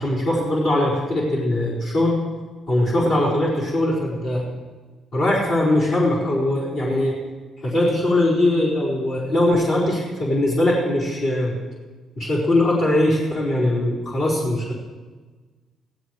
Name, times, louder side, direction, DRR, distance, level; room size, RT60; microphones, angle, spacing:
voice 1, 0.0-2.2 2.7-4.5 5.1-7.2 7.6-11.5 12.2-14.7, left 1 dB, 70° left, -7 dB, 4.7 m, -21 dB
16.5 x 16.0 x 3.3 m, 1.3 s
cardioid pair, 80°, 0 cm